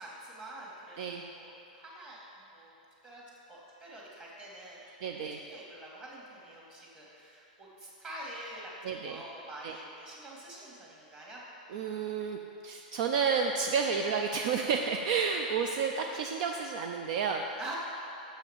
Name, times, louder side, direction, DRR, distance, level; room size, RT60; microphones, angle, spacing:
voice 1, 0.0-2.2 2.5-2.7 3.0-3.2 3.5-11.5 17.6-17.7, right 1 dB, 25° right, -4 dB, 2.1 m, -46 dB
voice 2, 5.0-5.4 8.8-9.2 9.6-9.7 11.7-17.6, right 5 dB, 55° right, 3 dB, 0.5 m, -31 dB
7.2 x 5.6 x 7.2 m, 2.8 s
hypercardioid pair, 140°, 5 cm